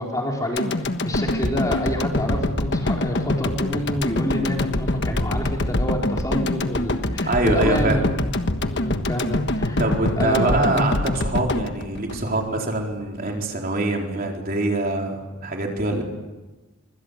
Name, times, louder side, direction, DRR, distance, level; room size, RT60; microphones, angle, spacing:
voice 1, 0.0-8.1 8.7-9.8 10.2-10.9, equal, 15° left, 0 dB, 4.4 m, -27 dB
sound 1, 0.6-12.8 13.2-13.3, left 1 dB, 50° left, 1.4 m, -25 dB
voice 2, 7.3-8.0 9.8-16.0, right 2 dB, 40° right, 1 dB, 4.2 m, -24 dB
25.5 x 25.0 x 8.4 m, 1.1 s
head